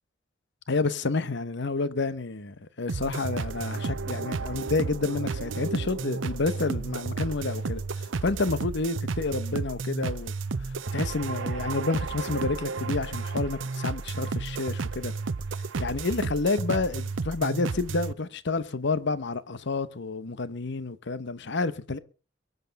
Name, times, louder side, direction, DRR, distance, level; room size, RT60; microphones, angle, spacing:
voice 1, 0.7-10.3 10.6-15.1 15.8-22.0, left 3 dB, 65° left, 1.0 m, -29 dB
sound 1, 2.9-18.1, right 4 dB, 80° right, 0.7 m, -32 dB
22.5 x 8.2 x 5.3 m
head